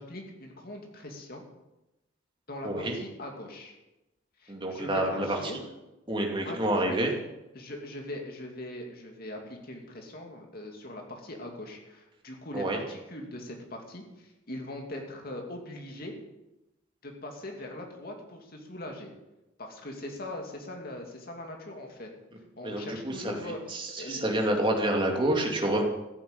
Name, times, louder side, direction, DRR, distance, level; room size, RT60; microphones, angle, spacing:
voice 1, 0.0-1.4 2.5-3.7 4.4-5.6 6.4-7.0 7.5-16.1 17.0-19.1 19.6-22.1 22.6-24.2, left 1 dB, 50° left, 2 dB, 2.7 m, -41 dB
voice 2, 2.6-2.9 4.5-5.4 6.1-7.1 12.5-12.8 22.6-25.8, right 1 dB, 25° right, 1 dB, 2.6 m, -28 dB
14.5 x 8.4 x 8.8 m, 0.97 s
head